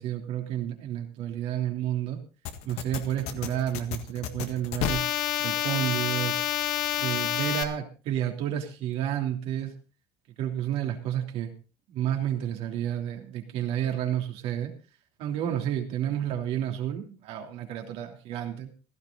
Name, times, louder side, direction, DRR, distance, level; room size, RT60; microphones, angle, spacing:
voice 1, 0.0-2.2 2.6-5.0 5.4-6.4 7.0-9.7 10.4-11.5 11.9-14.7 15.2-18.7, right 11 dB, 70° right, 3 dB, 3.1 m, -30 dB
sound 1, 2.5-7.6, left 12 dB, 80° left, 1.7 m, -29 dB
16.0 x 13.0 x 4.0 m, 0.33 s
cardioid pair, 110°, 10 cm